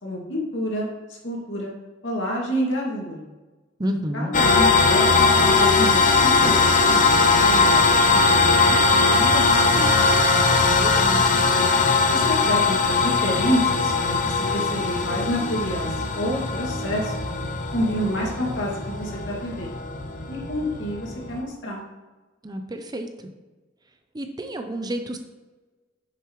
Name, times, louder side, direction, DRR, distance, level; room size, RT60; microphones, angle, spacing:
voice 1, 0.0-1.7 2.0-3.3 4.1-10.1 12.1-17.1 17.7-20.0 20.3-21.8, equal, 70° left, -3 dB, 2.4 m, -29 dB
voice 2, 3.8-4.3 10.6-11.2 22.4-23.1 24.1-25.2, equal, 20° right, 6 dB, 0.6 m, -30 dB
sound 1, 4.3-21.4, left 4 dB, 45° left, 0.9 m, -20 dB
10.5 x 6.8 x 3.2 m, 1.2 s
head